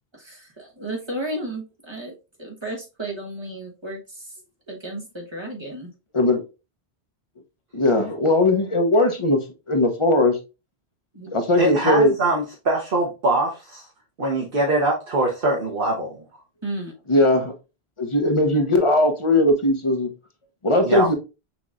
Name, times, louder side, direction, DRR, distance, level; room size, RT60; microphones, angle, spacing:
voice 1, 0.1-4.3 4.7-5.9 11.1-11.3 16.6-16.9, right 1 dB, 25° right, 0 dB, 1.2 m, -33 dB
voice 2, 7.7-9.4 9.7-10.4 11.3-12.1 17.1-17.5 18.0-20.1 20.6-21.1, left 1 dB, 35° left, 5 dB, 0.8 m, -19 dB
voice 3, 11.6-13.9 14.2-16.2 20.8-21.1, right 2 dB, 60° right, -1 dB, 1.1 m, -23 dB
6.1 x 3.0 x 2.4 m, 0.28 s
omnidirectional pair, 1.0 m